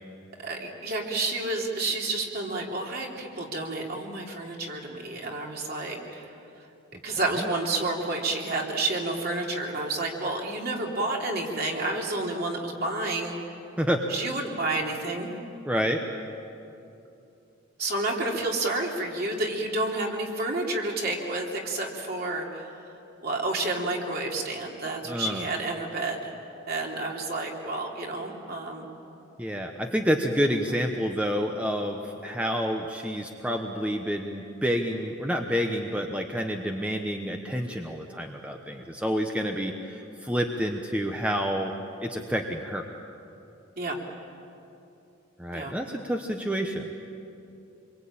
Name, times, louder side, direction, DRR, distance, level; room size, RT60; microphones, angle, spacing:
voice 1, 0.4-6.3 6.9-13.4 14.1-15.4 17.8-22.8 23.2-26.3 26.7-28.9 30.5-30.7 43.8-44.0 45.5-45.7, right 2 dB, 50° right, -1 dB, 3.3 m, -30 dB
voice 2, 15.6-16.0 25.1-25.5 29.4-41.7 42.0-42.8 45.4-46.9, equal, 5° right, 3 dB, 1.0 m, -28 dB
26.5 x 23.0 x 8.7 m, 2.8 s
head